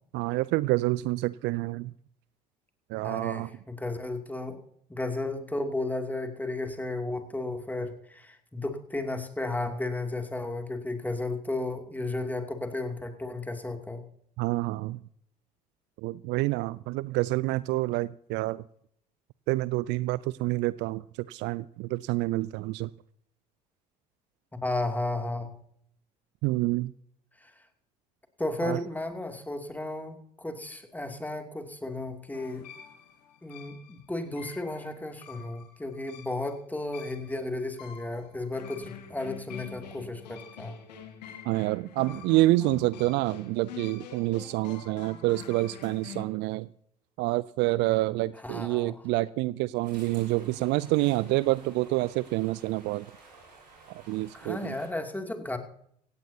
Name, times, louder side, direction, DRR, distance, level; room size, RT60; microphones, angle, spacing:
voice 1, 0.1-1.9 2.9-3.5 14.4-15.0 16.0-18.6 19.5-22.9 26.4-26.9 28.6-28.8 41.4-46.7 47.2-53.2 53.9-54.7, right 19 dB, 55° right, 0.4 m, -28 dB
voice 2, 3.0-4.6 4.9-14.0 24.6-25.5 27.4-27.5 28.4-32.7 33.4-40.8 48.4-48.9 54.3-55.6, left 2 dB, 10° left, 2.6 m, -34 dB
sound 1, 32.3-46.2, left 7 dB, 80° left, 1.8 m, -46 dB
sound 2, 49.8-54.9, right 3 dB, 85° right, 6.5 m, -53 dB
16.5 x 16.5 x 2.8 m
hypercardioid pair, 60°, 21 cm